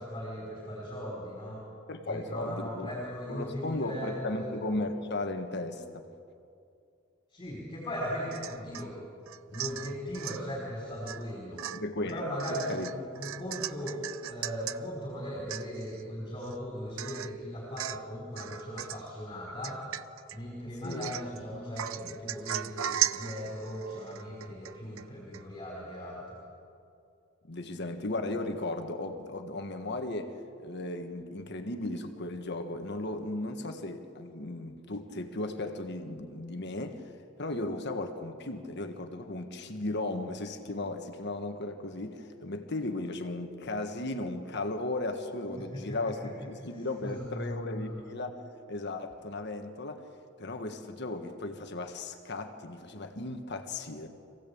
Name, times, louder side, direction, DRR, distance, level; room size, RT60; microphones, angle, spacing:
voice 1, 0.0-1.6 2.1-4.5 7.3-8.9 9.5-11.6 12.1-14.0 14.3-19.8 20.3-26.4 45.7-46.0 47.0-48.0, equal, 25° left, -3 dB, 4.8 m, -38 dB
voice 2, 1.9-2.9 3.3-6.1 11.6-12.9 20.8-21.1 27.4-48.4 48.7-50.0 50.4-54.1, left 2 dB, 55° left, 6 dB, 1.6 m, -36 dB
Domestic sounds home sounds / Chink clink / Drip, 8.3-8.9 9.3-10.4 11.1-11.3 11.6-14.8 15.2-15.3 15.5-16.0 16.4-16.5 17.0-17.4 17.8-18.1 18.4-19.1 19.6-20.4 20.8-21.4 21.8-25.1 25.3-25.4, right 11 dB, 85° right, 0.5 m, -37 dB
25.5 x 16.5 x 8.7 m, 2.5 s
head